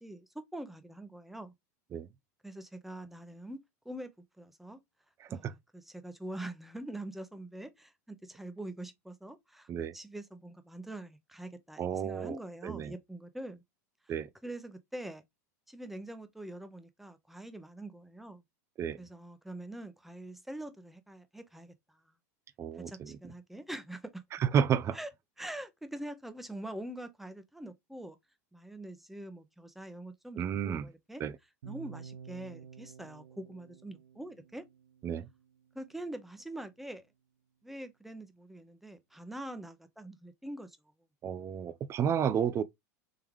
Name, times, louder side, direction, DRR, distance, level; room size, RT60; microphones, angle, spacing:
voice 1, 0.0-1.5 2.4-4.1 4.4-4.8 5.3-13.6 14.4-15.2 15.7-18.4 19.0-22.0 22.8-24.2 24.9-25.1 25.4-28.2 28.5-31.2 31.7-34.6 35.7-37.1 37.6-40.8, right 1 dB, ahead, 0.8 m, -44 dB
voice 2, 5.2-5.5 9.7-9.9 11.8-12.4 12.6-12.9 14.1-14.3 18.8-19.0 22.6-23.2 24.4-25.0 30.4-30.9 31.2-31.3 35.0-35.3 41.2-42.6, right 8 dB, 30° right, 0.5 m, -31 dB
sound 1, 31.6-35.7, right 6 dB, 80° right, 0.7 m, -50 dB
3.7 x 3.3 x 3.1 m
hypercardioid pair, 105°, 9 cm